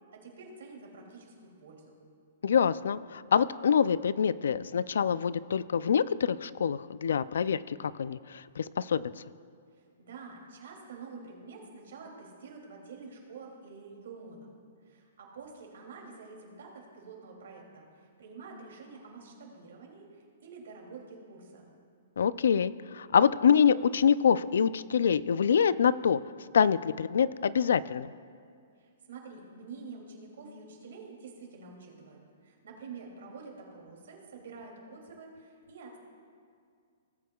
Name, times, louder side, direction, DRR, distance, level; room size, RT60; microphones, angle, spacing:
voice 1, 0.1-2.0 10.0-14.5 14.8-21.7 28.8-36.0, right 4 dB, 65° right, -1 dB, 2.7 m, -48 dB
voice 2, 2.4-9.1 22.2-26.2 26.5-28.1, left 7 dB, 80° left, 17 dB, 0.3 m, -25 dB
18.0 x 8.3 x 2.3 m, 2.2 s
hypercardioid pair, 175°, 0 cm